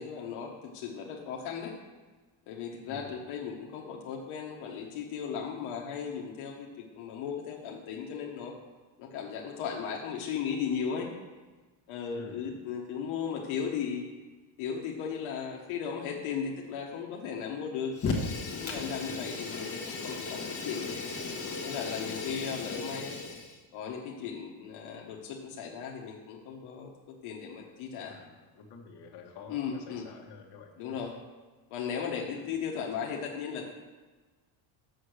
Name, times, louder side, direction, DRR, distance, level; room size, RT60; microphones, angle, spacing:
voice 1, 0.0-1.7 2.5-6.7 7.0-8.5 9.0-11.1 11.9-14.0 14.6-17.9 18.5-21.0 21.6-23.2 23.7-28.2 29.5-30.1 30.8-31.1 31.7-33.7, left 7 dB, 75° left, 0 dB, 1.3 m, -36 dB
voice 2, 2.9-3.2 12.1-12.5 19.0-19.4 22.5-22.7 28.0-30.7 32.3-32.5, left 4 dB, 55° left, 0 dB, 1.6 m, -49 dB
Fire, 17.9-23.6, left 4 dB, 30° left, 1.4 m, -36 dB
7.0 x 6.5 x 6.5 m, 1.3 s
cardioid pair, 140°, 49 cm